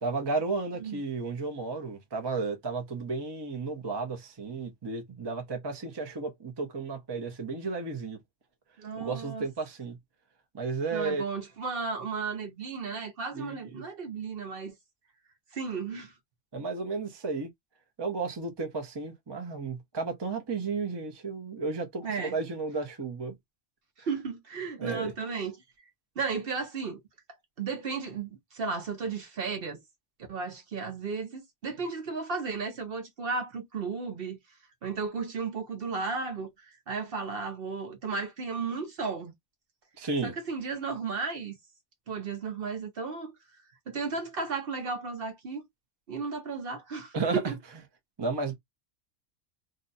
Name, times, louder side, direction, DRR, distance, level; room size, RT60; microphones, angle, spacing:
voice 1, 0.0-8.2 8.9-10.0 10.5-11.2 13.3-13.6 16.5-17.5 18.0-23.3 24.8-25.1 40.0-40.3 47.1-47.4 48.2-48.5, right 4 dB, 25° right, 0.6 m, -33 dB
voice 2, 8.8-9.4 10.9-14.7 15.5-16.1 22.0-22.4 24.0-25.6 26.2-27.0 27.6-29.8 30.3-34.4 34.8-39.3 40.2-41.6 42.1-43.4 43.9-45.6 46.1-47.5, right 4 dB, 55° right, 0.9 m, -34 dB
2.7 x 2.2 x 3.9 m
omnidirectional pair, 1.2 m